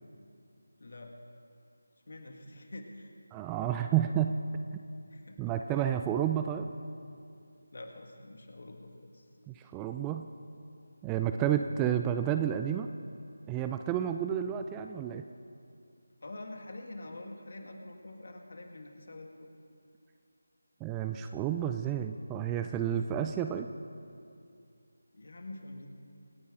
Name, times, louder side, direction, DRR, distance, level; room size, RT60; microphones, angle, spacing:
voice 1, 0.8-1.1 2.1-3.1 5.1-5.4 5.7-5.8 7.7-9.3 16.2-19.5 25.1-25.9, left 2 dB, 55° left, 3 dB, 1.9 m, -46 dB
voice 2, 3.3-4.3 5.4-6.7 9.5-10.3 11.0-12.9 13.5-15.2 20.8-23.7, right 10 dB, 10° right, 7 dB, 0.3 m, -30 dB
25.5 x 9.5 x 3.8 m, 2.4 s
figure-of-eight pair, 160°, 0 cm